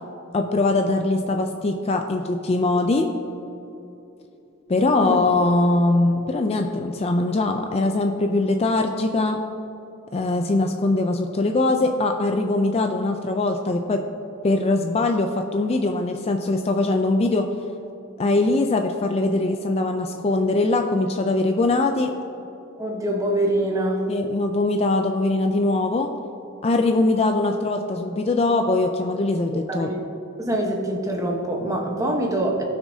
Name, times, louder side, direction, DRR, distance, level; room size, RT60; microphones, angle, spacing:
voice 1, 0.3-3.1 4.7-9.4 10.1-14.0 14.4-17.5 18.2-22.1 24.1-26.1 26.6-29.9, left 2 dB, 30° left, 4 dB, 0.4 m, -22 dB
voice 2, 22.8-24.1 29.7-30.0 30.4-32.6, right 1 dB, 15° right, 1 dB, 1.0 m, -24 dB
18.0 x 6.1 x 2.7 m, 3.0 s
head